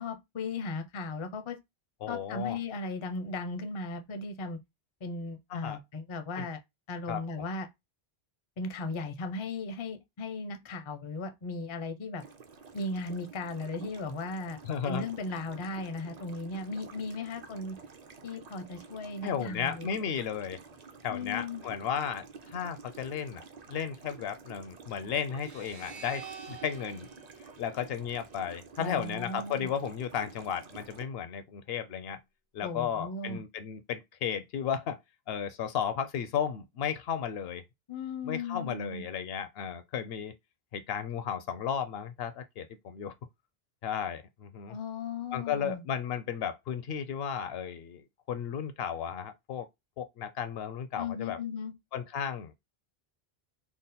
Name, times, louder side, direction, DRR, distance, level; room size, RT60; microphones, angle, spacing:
voice 1, 0.0-1.6 2.1-4.6 5.0-6.6 6.9-7.7 8.6-12.2 12.7-14.6 14.9-17.8 18.2-19.9 21.1-21.6 28.8-29.7 32.6-33.4 37.9-39.0 44.7-45.8 51.0-51.7, left 3 dB, 40° left, 0.4 m, -36 dB
voice 2, 2.0-2.6 5.5-5.8 6.4-6.5 7.1-7.4 14.6-15.1 19.2-20.6 21.0-27.1 27.6-32.2 32.5-35.0 35.3-37.6 38.2-40.3 40.7-43.1 43.8-44.8 45.3-49.7 50.0-51.4 51.9-52.5, left 8 dB, 70° left, 0.8 m, -34 dB
sound 1, 12.2-31.1, right 4 dB, 50° right, 0.6 m, -50 dB
sound 2, 25.3-28.6, right 6 dB, 65° right, 1.1 m, -48 dB
3.5 x 2.1 x 4.0 m
omnidirectional pair, 1.1 m